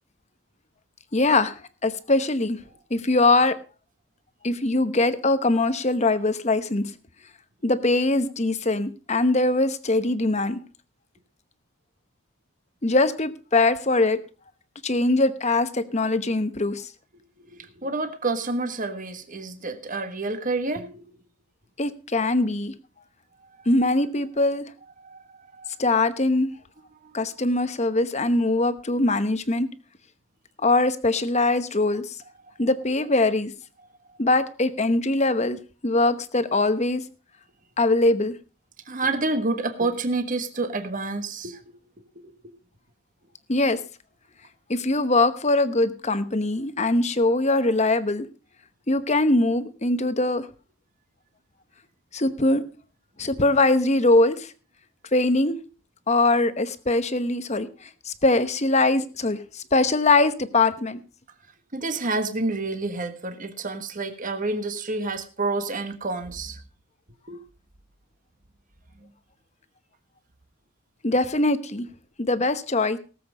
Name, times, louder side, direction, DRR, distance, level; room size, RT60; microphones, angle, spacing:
voice 1, 1.1-2.6 2.9-3.6 4.4-6.9 7.6-10.6 12.8-14.2 14.8-16.9 21.8-22.7 23.7-24.7 25.8-26.5 27.1-29.7 30.6-32.2 32.6-33.5 34.2-35.6 35.8-37.0 37.8-38.3 43.5-43.8 44.7-48.3 48.9-50.5 52.1-52.6 53.2-54.5 55.1-55.6 56.1-61.0 71.0-71.9 72.2-73.0, left 2 dB, 30° left, 12 dB, 1.0 m, -22 dB
voice 2, 17.4-21.0 23.4-23.7 25.0-25.7 27.0-27.1 38.8-41.6 42.2-42.3 61.7-66.6 67.3-67.4, right 3 dB, 40° right, 7 dB, 1.5 m, -29 dB
18.5 x 7.8 x 5.0 m, 0.35 s
head